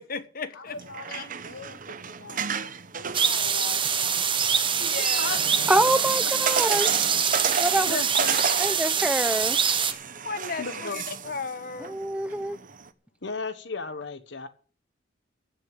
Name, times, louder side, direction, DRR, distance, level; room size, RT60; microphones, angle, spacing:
voice 1, 0.0-0.7 1.1-1.2 4.8-5.4 8.6-8.8 10.2-12.0, left 4 dB, 50° left, 1.4 m, -35 dB
voice 2, 0.5-2.7 3.0-4.3 4.8-5.1 12.3-12.6, left 3 dB, 90° left, 1.7 m, -43 dB
sound 1, 0.7-12.9, right 6 dB, 45° right, 1.0 m, -33 dB
sound 2, 3.1-9.9, right 7 dB, 30° right, 1.2 m, -24 dB
voice 3, 5.7-6.9 7.6-8.0 8.6-9.6 11.8-12.6, right 1 dB, 5° right, 0.9 m, -25 dB
voice 4, 7.9-8.4 10.6-11.0 13.2-14.5, left 4 dB, 75° left, 1.3 m, -34 dB
16.5 x 6.6 x 7.6 m
head